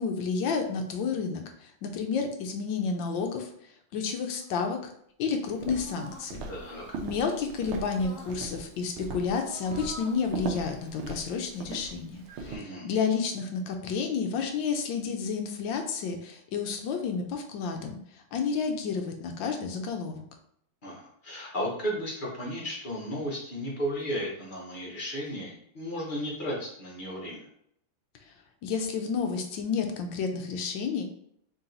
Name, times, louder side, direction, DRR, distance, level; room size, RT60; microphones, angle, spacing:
voice 1, 0.0-3.5 3.9-4.8 5.2-6.5 7.0-18.0 18.3-20.2 28.6-31.0, left 5 dB, 70° left, 4 dB, 1.3 m, -30 dB
sound 1, 4.2-4.7 5.6-6.3 7.7-8.4 9.3-10.3, equal, 55° right, 1.0 m, -47 dB
Walk footsteps, 5.5-12.6, right 4 dB, 80° right, 1.5 m, -39 dB
voice 2, 6.5-6.9 12.4-12.8 20.8-27.5, equal, 30° left, -5 dB, 1.0 m, -34 dB
3.9 x 2.9 x 3.8 m, 0.69 s
omnidirectional pair, 2.3 m